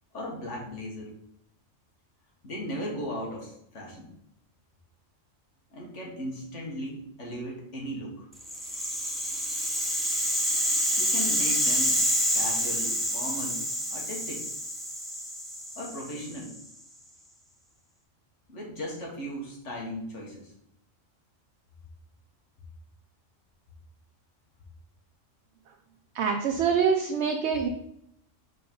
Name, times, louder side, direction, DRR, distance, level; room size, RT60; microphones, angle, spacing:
voice 1, 0.1-1.1 2.4-4.1 5.7-8.3 11.0-12.0 12.3-13.6 13.9-14.5 15.8-16.5 18.5-20.5, equal, 70° left, -2 dB, 2.1 m, -37 dB
Rattle (instrument), 8.4-16.6, equal, ahead, 0.9 m, -28 dB
voice 2, 26.1-27.7, right 6 dB, 65° right, 2 dB, 0.9 m, -25 dB
5.4 x 4.3 x 5.5 m, 0.75 s
omnidirectional pair, 1.3 m